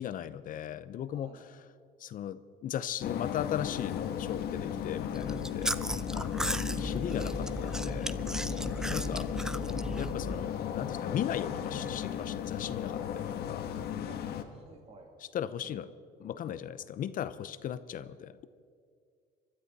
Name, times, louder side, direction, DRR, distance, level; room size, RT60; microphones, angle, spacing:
voice 1, 0.0-1.3 2.0-5.7 6.1-8.1 8.4-8.6 8.9-9.3 10.0-13.6 15.3-15.9 16.2-18.4, left 10 dB, 55° left, 14 dB, 0.7 m, -37 dB
voice 2, 1.1-1.4 6.4-7.0 7.4-7.5 9.0-9.4 14.1-14.2 14.5-15.1 15.6-15.8 16.5-16.7, right 3 dB, 35° right, 1 dB, 2.3 m, -55 dB
sound 1, 3.0-14.4, left 9 dB, 70° left, 1.2 m, -35 dB
Chewing mastication, 5.1-10.5, right 1 dB, 5° right, 0.5 m, -36 dB
25.0 x 12.5 x 4.1 m, 2.2 s
cardioid pair, 110°, 17 cm